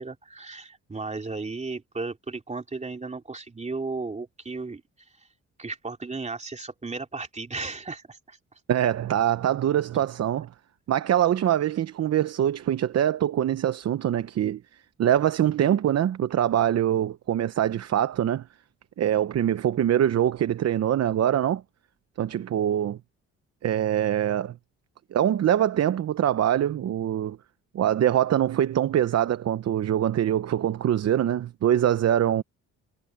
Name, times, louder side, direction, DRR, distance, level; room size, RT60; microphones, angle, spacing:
voice 1, 0.0-4.8 5.6-8.4 9.9-10.1, right 3 dB, 25° right, 3.2 m, -35 dB
voice 2, 8.7-10.5 10.9-14.6 15.0-18.4 19.0-21.6 22.2-23.0 23.6-24.6 25.1-27.4 27.7-32.4, right 11 dB, 55° right, 0.9 m, -23 dB
cardioid pair, 90°, 30 cm